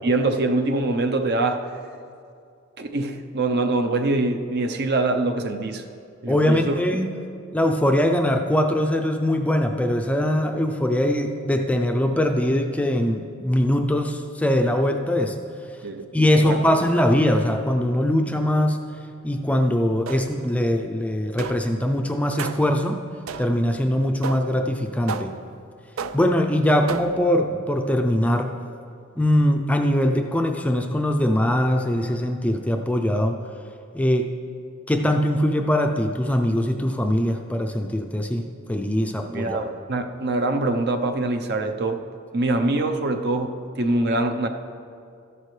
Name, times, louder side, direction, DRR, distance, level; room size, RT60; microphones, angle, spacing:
voice 1, 0.0-1.6 2.8-5.8 6.2-6.7 15.8-16.1 16.3-16.7 39.3-42.0 42.3-44.5, right 2 dB, 50° right, 6 dB, 0.7 m, -24 dB
voice 2, 6.3-7.1 7.5-15.4 16.1-18.8 19.2-23.0 23.4-25.3 26.1-28.6 29.2-33.4 33.9-34.3 34.9-39.6, left 1 dB, 5° left, 4 dB, 0.4 m, -22 dB
sound 1, 20.1-20.6 21.4-21.8 22.4-22.8 23.3-23.7 24.2-24.6 25.1-25.6 26.0-26.4 26.9-27.3, right 5 dB, 90° right, 0.4 m, -33 dB
13.5 x 11.0 x 3.2 m, 2.4 s
head